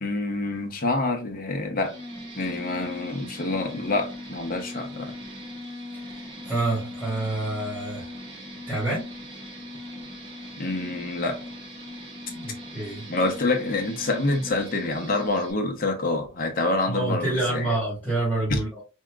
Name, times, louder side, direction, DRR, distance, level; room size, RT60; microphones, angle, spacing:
voice 1, 0.0-1.9 2.4-5.1 10.6-11.4 13.1-17.7 18.5-18.6, left 2 dB, 45° left, 0.9 m, -27 dB
sound 1, 1.8-15.5, left 1 dB, 25° right, 1.1 m, -39 dB
voice 2, 5.9-8.1 8.7-9.1 12.3-13.1 16.9-18.8, right 2 dB, 5° right, 2.1 m, -28 dB
4.5 x 2.8 x 2.4 m
head